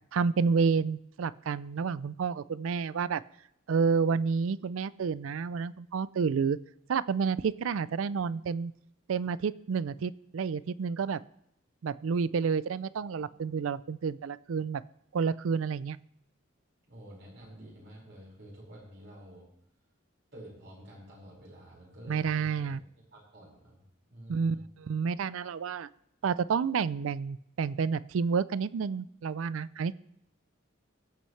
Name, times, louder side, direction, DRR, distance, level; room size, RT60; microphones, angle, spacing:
voice 1, 0.1-3.2 3.7-6.6 6.9-8.7 9.1-11.2 11.8-14.8 15.1-16.0 22.1-22.8 24.3-25.9 26.2-29.9, right 5 dB, 85° right, 18 dB, 0.4 m, -29 dB
voice 2, 16.9-19.5 20.3-22.8 23.1-23.8 24.1-24.6, right 1 dB, 60° right, -4 dB, 5.2 m, -49 dB
22.5 x 8.4 x 3.2 m, 0.77 s
head